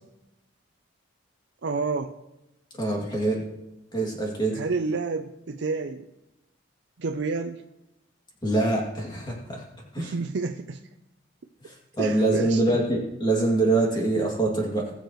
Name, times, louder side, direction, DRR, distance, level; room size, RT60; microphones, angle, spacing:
voice 1, 1.6-2.2 4.5-6.1 7.0-7.6 10.0-10.8 12.0-12.8, right 4 dB, 60° right, 5 dB, 0.5 m, -29 dB
voice 2, 2.7-3.4 3.9-4.6 8.4-9.6 9.9-10.1 11.6-14.9, right 2 dB, 20° left, -1 dB, 2.4 m, -24 dB
20.0 x 6.8 x 3.1 m, 0.92 s
head